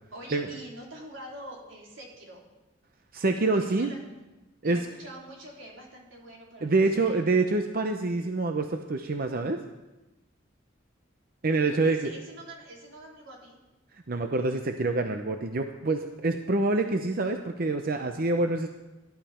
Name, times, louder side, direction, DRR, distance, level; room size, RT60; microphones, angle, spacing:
voice 1, 0.1-2.4 3.7-4.0 4.6-7.2 11.6-13.6, right 1 dB, 90° right, -3 dB, 3.9 m, -45 dB
voice 2, 3.1-3.9 4.6-4.8 6.6-9.6 11.4-12.2 14.1-18.7, right 3 dB, 50° right, 6 dB, 0.7 m, -26 dB
17.5 x 11.5 x 4.4 m, 1.1 s
head